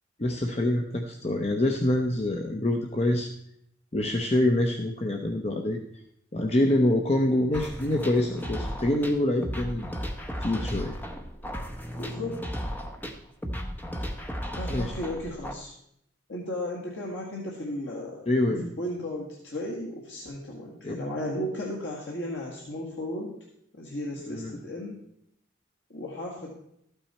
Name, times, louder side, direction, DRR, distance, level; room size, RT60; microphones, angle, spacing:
voice 1, 0.2-3.3 3.9-5.8 6.3-9.9 10.4-10.9 14.7-14.9 18.3-18.7 20.8-21.0 24.3-24.6, left 1 dB, 30° left, 3 dB, 0.7 m, -26 dB
sound 1, 7.5-15.5, equal, 10° left, 0.8 m, -35 dB
voice 2, 11.9-12.6 14.5-15.7 16.3-18.3 18.8-23.3 23.7-25.0 25.9-26.6, left 1 dB, 65° left, -2 dB, 1.7 m, -35 dB
13.0 x 8.9 x 4.3 m, 0.73 s
head